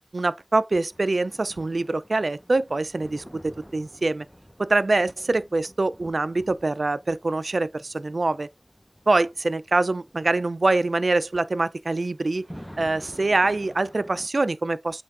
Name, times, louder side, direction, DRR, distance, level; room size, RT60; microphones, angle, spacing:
voice 1, 0.1-4.3 4.6-8.5 9.1-12.4 12.8-15.0, right 2 dB, 70° right, 0.5 m, -24 dB
sound 1, 0.9-14.3, equal, ahead, 1.0 m, -48 dB
8.4 x 3.5 x 4.8 m
wide cardioid pair, 55°, 0 cm